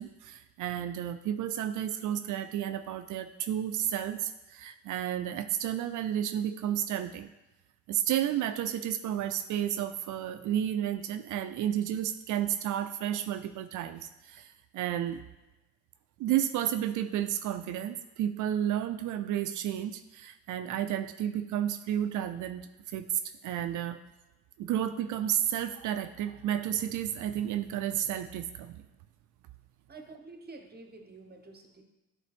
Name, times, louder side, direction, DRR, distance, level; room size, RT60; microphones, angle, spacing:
voice 1, 0.0-7.3 7.9-15.2 16.2-24.0 24.6-28.8, right 10 dB, 65° right, 10 dB, 0.4 m, -32 dB
voice 2, 29.9-31.8, right 3 dB, 30° right, 5 dB, 1.0 m, -49 dB
9.3 x 3.5 x 3.4 m, 1.1 s
cardioid pair, 90°, 32 cm